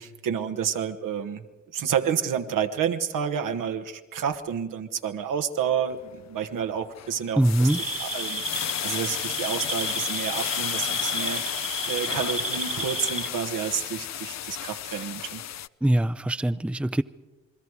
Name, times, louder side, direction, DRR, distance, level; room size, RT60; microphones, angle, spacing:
voice 1, 0.0-1.4 1.7-8.4 8.8-11.4 11.9-15.4, right 8 dB, 70° right, 7 dB, 1.4 m, -29 dB
sound 1, 5.9-6.2 6.6-15.7, left 11 dB, 55° left, 0.6 m, -33 dB
voice 2, 7.4-7.8 15.8-17.0, right 1 dB, 5° right, 14 dB, 0.6 m, -22 dB
sound 2, 7.7-13.3, right 1 dB, 40° right, 1.7 m, -32 dB
28.5 x 21.5 x 4.8 m, 1.2 s
hypercardioid pair, 40°, 33 cm